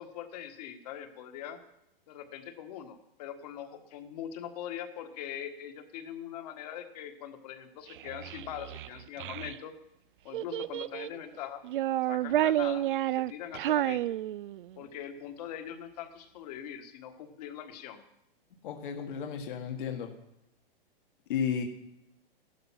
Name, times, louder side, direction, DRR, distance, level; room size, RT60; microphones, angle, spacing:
voice 1, 0.0-1.6 2.1-9.7 10.2-11.6 12.1-14.2 14.8-18.0, left 10 dB, 45° left, 7 dB, 1.6 m, -42 dB
Child speech kid speaking, 7.9-9.6 10.3-11.2 11.6-14.8, right 13 dB, 60° right, 0.4 m, -30 dB
voice 2, 18.6-20.1 21.3-21.6, left 7 dB, 60° left, 3 dB, 1.8 m, -33 dB
14.5 x 12.0 x 5.8 m, 0.82 s
hypercardioid pair, 160°, 29 cm